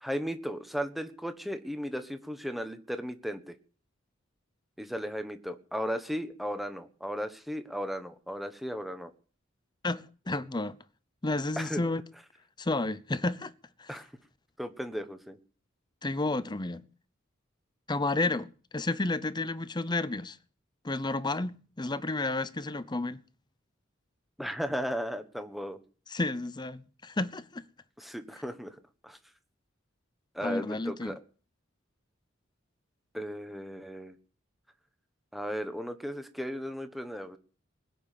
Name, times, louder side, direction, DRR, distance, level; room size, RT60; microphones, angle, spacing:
voice 1, 0.0-3.6 4.8-9.1 11.6-11.8 13.9-14.1 14.6-15.4 24.4-25.8 28.0-28.7 29.0-29.2 30.3-31.2 33.1-34.1 35.3-37.4, equal, ahead, 1.3 m, -35 dB
voice 2, 9.8-10.8 11.2-12.0 12.6-13.5 13.8-13.9 16.0-16.8 17.9-20.4 20.8-23.2 26.1-27.6 30.4-31.2, left 2 dB, 20° left, 0.7 m, -31 dB
20.0 x 7.1 x 9.3 m
head